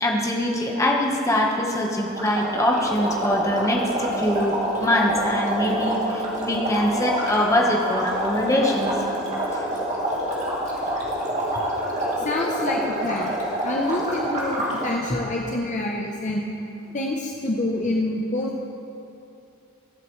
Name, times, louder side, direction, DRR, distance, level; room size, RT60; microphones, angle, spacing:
voice 1, 0.0-9.0 9.5-9.7 15.1-15.2, left 1 dB, 15° left, -1 dB, 1.2 m, -23 dB
sound 1, 2.1-15.0, right 1 dB, 35° right, 2.2 m, -27 dB
voice 2, 12.2-16.5 16.9-18.6, left 1 dB, 35° left, -1 dB, 0.8 m, -27 dB
23.0 x 7.9 x 3.2 m, 2.8 s
head